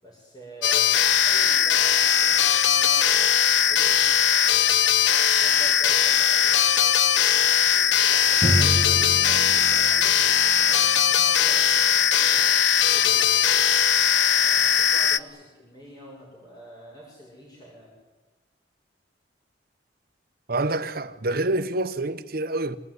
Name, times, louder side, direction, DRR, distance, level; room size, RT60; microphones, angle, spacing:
voice 1, 0.0-4.5 5.0-12.5 12.8-13.7 14.4-18.0, equal, 20° left, 7.0 m, -46 dB
sound 1, 0.6-15.2, left 9 dB, 70° left, 0.7 m, -20 dB
Drum, 8.4-11.9, equal, 25° right, 1.7 m, -28 dB
voice 2, 20.5-22.8, right 2 dB, 50° right, 1.1 m, -27 dB
26.0 x 19.5 x 9.7 m
head